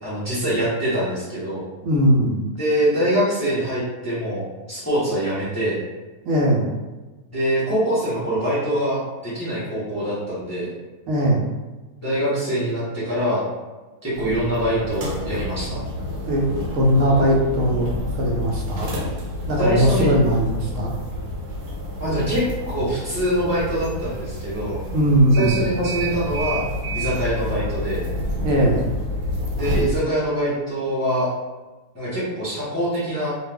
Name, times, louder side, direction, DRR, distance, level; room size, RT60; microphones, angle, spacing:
voice 1, 0.0-1.6 2.6-5.8 7.3-10.7 12.0-13.4 14.0-15.8 19.6-20.1 22.0-24.8 25.4-26.6 26.9-28.0 29.6-31.3 31.9-33.3, equal, 15° left, -10 dB, 0.7 m, -24 dB
voice 2, 1.8-2.4 6.3-6.7 11.1-11.5 16.3-16.5 16.7-18.9 19.5-20.9 24.9-25.6 28.4-28.8, equal, 70° right, -2 dB, 0.9 m, -19 dB
sound 1, 14.1-30.0, left 1 dB, 85° right, 1.2 m, -29 dB
2.4 x 2.4 x 3.4 m, 1.2 s
omnidirectional pair, 1.6 m